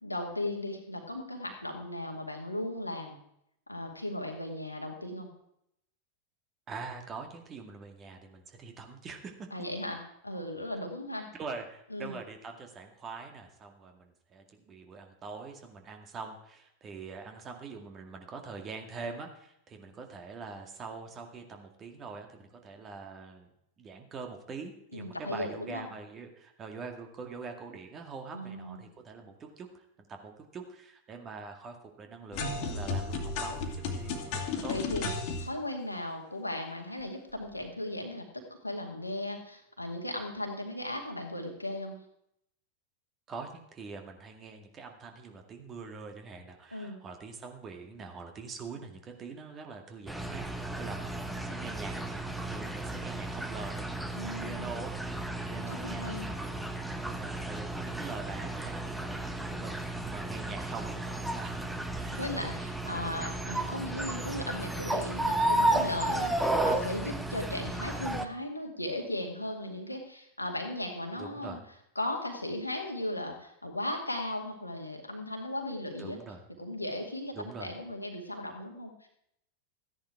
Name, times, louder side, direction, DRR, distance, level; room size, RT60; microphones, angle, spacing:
voice 1, 0.0-3.2 3.7-5.3 9.5-11.3 11.9-12.2 24.9-25.9 28.3-28.8 34.7-35.1 35.4-42.0 46.7-47.0 54.2-54.7 55.7-56.3 62.1-71.6 72.0-76.2 76.6-79.1, left 1 dB, 85° left, 2 dB, 2.2 m, -37 dB
voice 2, 6.7-9.5 11.4-23.5 23.8-35.2 43.3-53.9 54.2-56.6 57.0-61.7 62.0-62.3 71.2-71.6 76.0-76.4 77.3-77.7, right 4 dB, 25° right, 4 dB, 2.2 m, -44 dB
sound 1, 32.3-35.5, left 4 dB, 45° left, 2.3 m, -33 dB
sound 2, 50.1-68.2, right 1 dB, 5° right, 1.1 m, -33 dB
14.5 x 10.0 x 4.7 m, 0.75 s
figure-of-eight pair, 90°, 0 cm